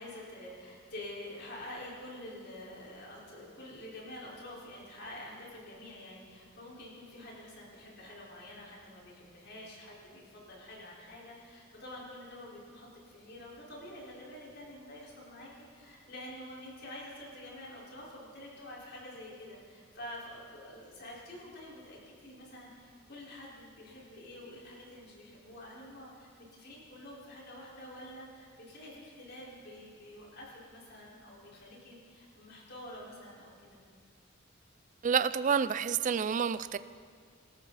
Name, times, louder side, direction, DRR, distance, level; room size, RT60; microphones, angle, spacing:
voice 1, 0.0-33.8, left 1 dB, 55° left, -4 dB, 4.7 m, -48 dB
voice 2, 35.0-36.8, right 6 dB, 40° right, 14 dB, 0.4 m, -28 dB
25.5 x 13.0 x 4.1 m, 2.1 s
head